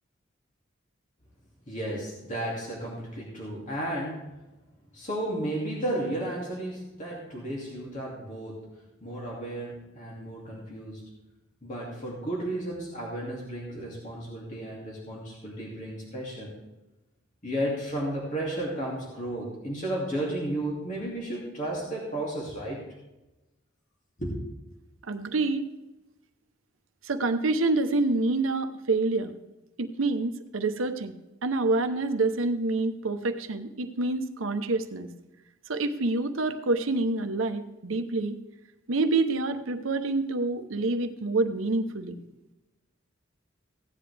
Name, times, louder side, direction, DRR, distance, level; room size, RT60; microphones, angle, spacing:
voice 1, 1.7-4.2 4.9-8.7 9.0-11.1 11.6-16.5 17.4-22.8 24.2-24.4, right 1 dB, 40° left, -4 dB, 2.5 m, -33 dB
voice 2, 25.0-25.6 27.0-29.3 29.8-31.1 31.4-35.1 35.7-38.4 38.9-42.2, right 3 dB, 80° right, 9 dB, 0.9 m, -27 dB
16.0 x 9.8 x 3.4 m, 1.0 s
head